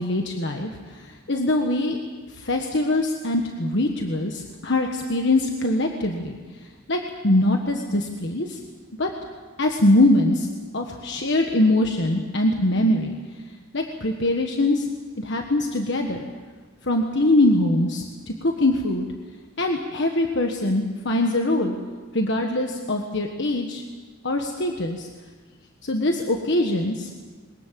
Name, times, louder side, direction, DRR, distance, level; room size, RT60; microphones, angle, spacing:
voice 1, 0.0-2.0 2.3-6.4 6.9-8.6 9.0-9.1 9.6-10.5 10.7-13.1 13.7-14.9 15.2-16.2 16.8-19.0 19.6-21.8 22.1-23.8 24.2-25.1 25.8-27.1, left 1 dB, 55° left, 3 dB, 1.5 m, -22 dB
22.5 x 20.5 x 7.6 m, 1.4 s
head